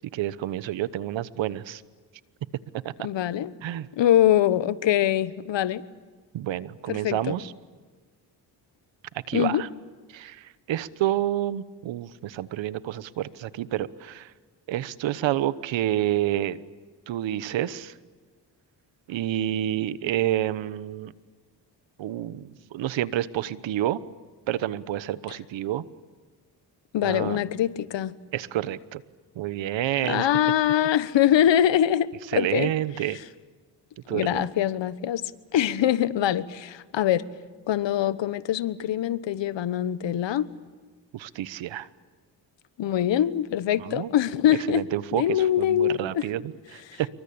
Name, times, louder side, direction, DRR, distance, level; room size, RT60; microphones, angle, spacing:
voice 1, 0.1-1.8 2.8-2.9 3.6-3.9 6.3-7.5 9.3-9.7 10.1-14.3 14.7-16.6 17.1-17.9 19.1-21.1 22.0-24.0 24.5-25.8 27.0-27.4 28.3-29.0 29.3-30.3 32.3-33.2 34.1-34.5 41.1-41.9 43.8-44.1 44.5-47.1, right 13 dB, 85° right, 16 dB, 1.2 m, -29 dB
voice 2, 3.0-3.5 4.0-5.8 6.9-7.4 9.3-9.6 26.9-28.1 30.0-32.7 34.1-35.2 35.5-37.2 37.7-40.5 42.8-44.8 45.1-46.2 46.9-47.0, left 11 dB, 75° left, 16 dB, 1.3 m, -23 dB
27.0 x 24.0 x 8.7 m, 1.4 s
cardioid pair, 80°, 44 cm